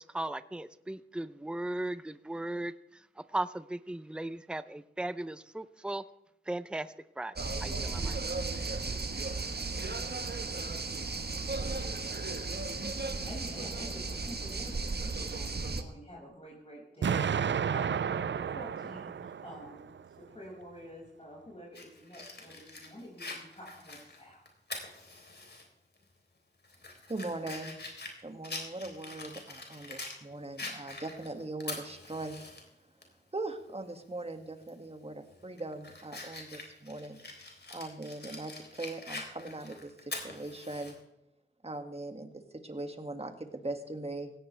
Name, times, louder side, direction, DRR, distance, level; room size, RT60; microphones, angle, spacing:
voice 1, 0.0-6.0 6.5-7.3 7.6-8.2, right 1 dB, 5° right, 13 dB, 0.6 m, -37 dB
sound 1, 7.4-15.8, right 3 dB, 60° right, 1.4 m, -35 dB
voice 2, 13.2-19.9 20.2-24.4, equal, 35° left, -5 dB, 6.1 m, -48 dB
Explosion, 17.0-20.0, right 7 dB, 80° right, 0.4 m, -32 dB
Fire, 21.7-25.6 26.0-26.1 26.6-30.2 30.6-32.6 33.0-33.1 34.6-34.9 35.3-40.9, left 2 dB, 65° left, 3.8 m, -44 dB
voice 3, 27.1-27.8 28.2-32.4 33.3-37.2 37.7-41.0 41.6-44.3, right 2 dB, 35° right, 5 dB, 2.1 m, -40 dB
17.5 x 16.0 x 3.4 m, 0.86 s
wide cardioid pair, 60°, 19 cm